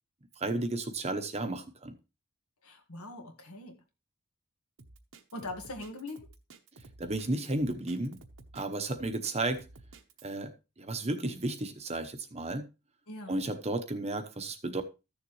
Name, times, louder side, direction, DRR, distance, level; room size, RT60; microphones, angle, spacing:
voice 1, 0.4-2.0 7.0-8.2 8.5-9.7 10.2-12.7 13.3-14.8, right 2 dB, 30° right, 0.9 m, -33 dB
voice 2, 2.6-3.8 5.3-6.3 13.1-13.4, left 2 dB, 75° left, 1.8 m, -42 dB
Drum kit, 4.8-10.3, right 3 dB, 60° right, 1.0 m, -53 dB
14.0 x 6.9 x 3.1 m
head